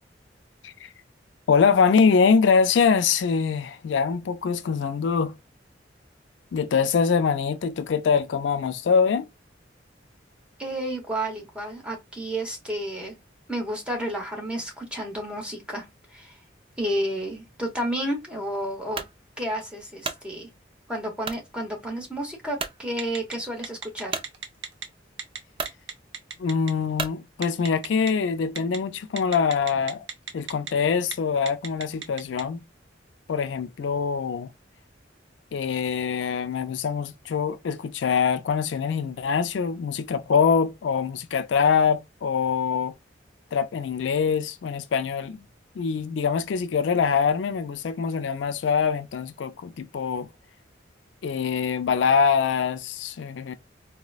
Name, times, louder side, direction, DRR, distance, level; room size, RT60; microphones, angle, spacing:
voice 1, 1.5-5.3 6.5-9.3 26.4-30.1 30.3-32.6 33.3-34.5 35.5-42.9 43.5-45.4 45.8-50.3 51.2-53.5, left 6 dB, 75° left, 0.4 m, -24 dB
voice 2, 10.6-13.2 13.5-15.9 16.1-16.4 16.8-19.0 19.4-20.5 20.9-24.2, right 1 dB, 5° right, 0.9 m, -31 dB
sound 1, 18.9-19.2 19.7-20.3 21.2-21.5 22.0-22.1 22.6-22.8 24.1-24.3 25.1-25.2 25.5-25.8 27.0-27.2, right 5 dB, 30° right, 0.3 m, -32 dB
Telephone, 23.0-23.3 23.6-24.8 25.2-25.4 25.6-26.7 27.4-28.1 28.6-28.8 29.2-30.7 31.0-31.1 31.5-32.4, right 6 dB, 85° right, 0.7 m, -34 dB
3.9 x 2.1 x 2.3 m
head